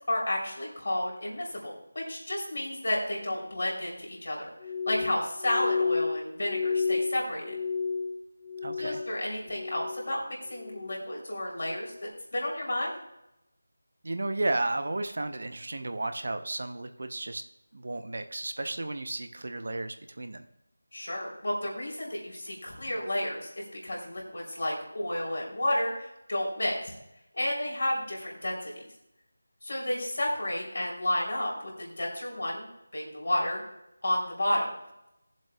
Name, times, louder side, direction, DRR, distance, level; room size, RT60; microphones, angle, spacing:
voice 1, 0.1-4.5 4.9-7.6 8.8-10.2 10.5-12.9 20.9-26.9 27.3-28.7 29.6-32.7 32.9-33.6 34.0-34.7, left 1 dB, 65° left, -3 dB, 3.4 m, -31 dB
Glass, 4.6-9.2 9.5-10.1 10.5-11.1 11.6-11.9, left 5 dB, 20° left, 1.1 m, -32 dB
voice 2, 8.6-9.0 14.0-17.4 17.7-20.5, right 2 dB, 60° right, 8 dB, 0.7 m, -33 dB
19.5 x 7.4 x 2.3 m, 0.87 s
figure-of-eight pair, 165°, 0 cm